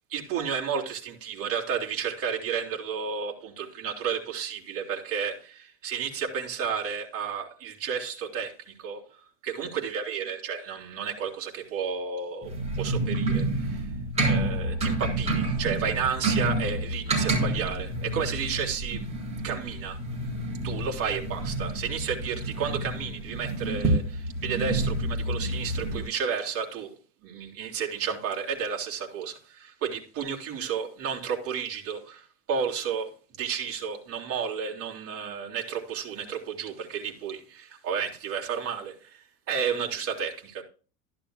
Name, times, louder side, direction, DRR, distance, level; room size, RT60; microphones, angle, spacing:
voice 1, 0.1-8.5 8.8-9.0 9.4-13.8 14.2-19.0 19.4-20.0 20.6-26.9 27.2-33.1 33.4-39.2 39.5-40.6, right 7 dB, 30° right, 3.2 m, -32 dB
sound 1, 12.4-26.0, right 2 dB, 15° right, 4.1 m, -29 dB
13.0 x 11.0 x 2.3 m
supercardioid pair, 155°, 44 cm